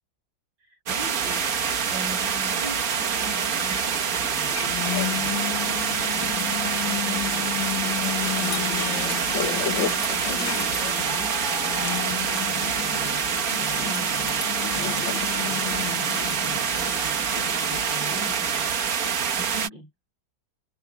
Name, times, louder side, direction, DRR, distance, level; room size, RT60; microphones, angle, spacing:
voice 1, 0.6-11.4 11.8-19.9, right 1 dB, 85° right, 8.6 m, -42 dB
sound 1, 0.9-19.7, right 7 dB, 55° right, 1.6 m, -26 dB
sound 2, 1.2-18.4, left 11 dB, 85° left, 2.1 m, -33 dB
omnidirectional pair, 2.0 m